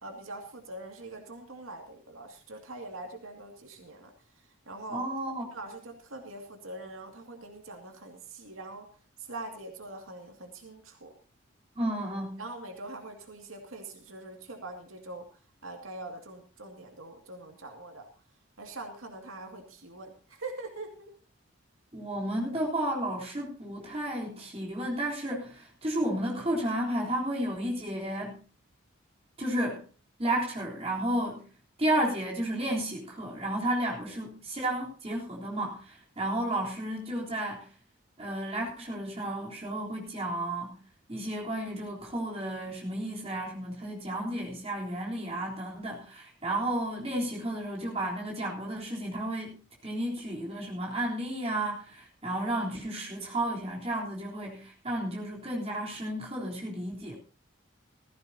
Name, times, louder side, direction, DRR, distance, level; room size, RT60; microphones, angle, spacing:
voice 1, 0.0-5.1 5.5-8.9 9.2-11.1 12.4-15.3 15.6-18.1 18.6-21.1, right 2 dB, 80° right, 3 dB, 2.4 m, -43 dB
voice 2, 4.9-5.4 11.8-12.4 21.9-28.4 29.4-29.8 30.2-31.4 31.8-37.7 38.2-40.8 41.1-49.6 49.8-57.1, right 1 dB, 30° right, -2 dB, 3.7 m, -32 dB
17.0 x 14.5 x 2.8 m, 0.36 s
head